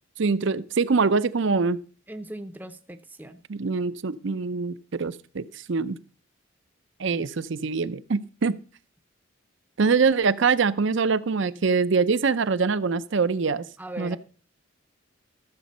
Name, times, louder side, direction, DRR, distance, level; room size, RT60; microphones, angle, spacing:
voice 1, 0.2-1.8 3.5-6.0 7.0-8.6 9.8-13.7 14.0-14.2, right 4 dB, 60° right, 16 dB, 0.6 m, -24 dB
voice 2, 2.1-3.4 11.4-11.6 13.8-14.2, right 1 dB, 10° right, 8 dB, 0.6 m, -39 dB
13.0 x 7.5 x 5.4 m, 0.39 s
head